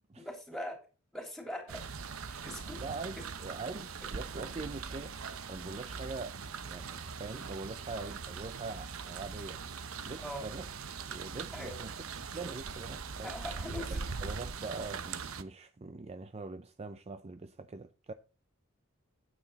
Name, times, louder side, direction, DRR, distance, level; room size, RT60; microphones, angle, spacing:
voice 1, 0.2-0.8 1.1-1.8 2.3-2.8 10.2-10.5 11.5-11.8 13.2-14.0, left 1 dB, ahead, 3.2 m, -41 dB
sound 1, 1.7-15.4, right 5 dB, 75° right, 0.9 m, -41 dB
voice 2, 2.8-9.6 10.0-10.7 11.1-12.0 12.3-13.3 14.2-18.1, right 3 dB, 30° right, 0.5 m, -43 dB
9.2 x 9.0 x 4.1 m
head